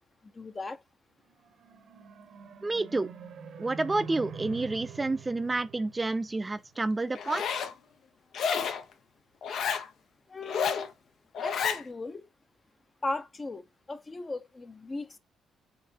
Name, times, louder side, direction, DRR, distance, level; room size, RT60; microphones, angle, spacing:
voice 1, 0.2-0.8 10.3-10.9 11.4-12.3 13.0-15.2, left 3 dB, 30° left, 0.6 m, -37 dB
sound 1, 1.3-6.8, right 6 dB, 65° right, 0.9 m, -46 dB
voice 2, 2.6-3.1 3.6-7.4, right 2 dB, 20° right, 0.4 m, -29 dB
Zipper (clothing), 7.1-7.7 8.3-8.8 9.4-9.9 10.4-10.9 11.3-11.8, left 6 dB, 70° left, 0.6 m, -30 dB
3.8 x 3.6 x 2.8 m
cardioid pair, 90°, 0 cm